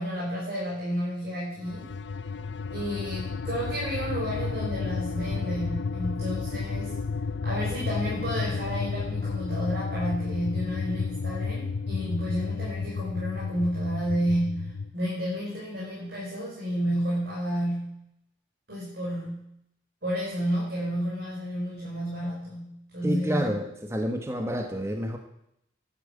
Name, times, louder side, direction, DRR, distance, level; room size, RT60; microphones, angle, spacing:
voice 1, 0.0-1.9 2.7-6.9 7.4-18.0 18.7-19.5 20.0-23.5, equal, 60° right, -6 dB, 5.4 m, -31 dB
sound 1, 1.6-14.9, left 4 dB, 65° left, 0.5 m, -32 dB
voice 2, 23.0-25.2, equal, 15° right, 4 dB, 1.2 m, -29 dB
11.5 x 9.5 x 8.6 m, 0.78 s
head